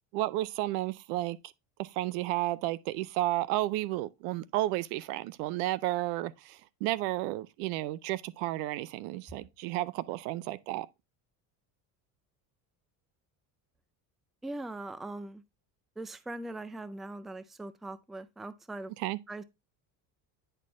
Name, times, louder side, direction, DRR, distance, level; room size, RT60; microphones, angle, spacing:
voice 1, 0.1-1.4 1.8-10.9 19.0-19.2, right 16 dB, 90° right, 0.6 m, -32 dB
voice 2, 14.4-15.4 16.0-18.9 19.3-19.4, right 2 dB, ahead, 0.3 m, -41 dB
9.8 x 4.4 x 3.1 m
supercardioid pair, 105°, 45 cm